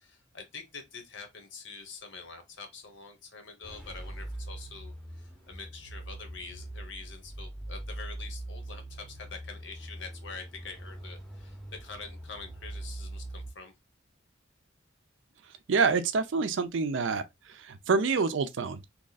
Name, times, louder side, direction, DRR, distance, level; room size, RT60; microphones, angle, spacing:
voice 1, 0.0-13.7, left 4 dB, 65° left, 0.9 m, -45 dB
sound 1, 3.6-13.5, right 1 dB, ahead, 0.7 m, -42 dB
voice 2, 15.7-18.9, right 4 dB, 70° right, 0.5 m, -27 dB
2.9 x 2.4 x 4.0 m
head